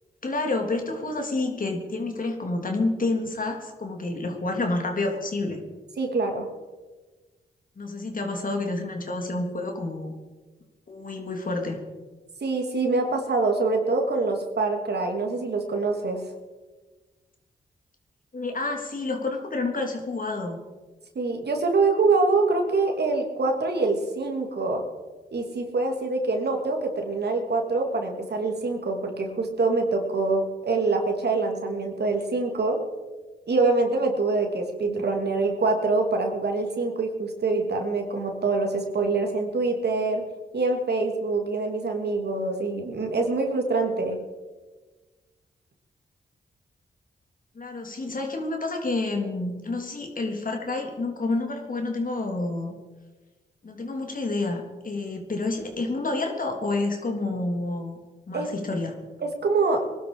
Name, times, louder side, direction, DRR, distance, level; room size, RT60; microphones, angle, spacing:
voice 1, 0.2-5.6 7.8-10.1 10.9-11.8 18.3-20.6 47.5-52.8 53.6-58.0 58.3-58.9, left 2 dB, 50° left, 2 dB, 3.3 m, -29 dB
voice 2, 6.0-6.5 12.4-16.2 21.1-24.8 25.3-32.8 33.5-40.2 40.5-44.2 58.3-58.5 59.2-59.8, right 3 dB, 65° right, 3 dB, 2.9 m, -25 dB
20.5 x 12.0 x 5.0 m, 1.3 s
cardioid pair, 50°, 18 cm